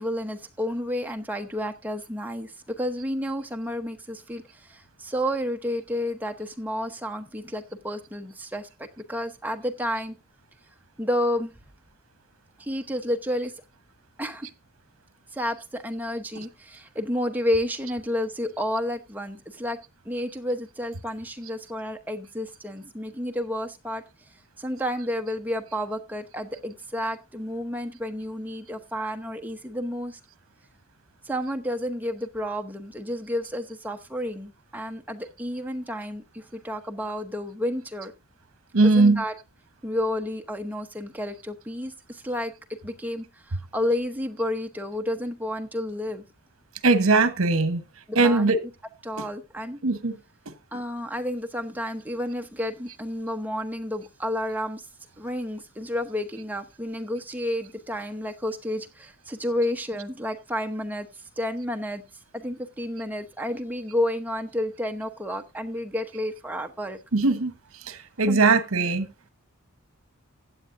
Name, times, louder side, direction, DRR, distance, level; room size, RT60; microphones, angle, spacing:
voice 1, 0.0-10.2 11.0-11.5 12.6-13.6 14.2-14.5 15.3-19.8 20.0-24.0 24.6-30.2 31.2-38.1 38.8-39.3 39.8-42.5 42.8-46.2 48.1-48.5 49.0-49.8 50.7-54.9 55.2-61.1 61.4-62.0 62.3-67.0 68.3-68.4, left 1 dB, 10° right, 0.9 m, -31 dB
voice 2, 38.7-39.2 46.8-47.8 48.2-48.6 49.8-50.1 67.1-67.5 67.9-69.1, right 3 dB, 65° right, 1.1 m, -20 dB
15.5 x 9.3 x 2.6 m
head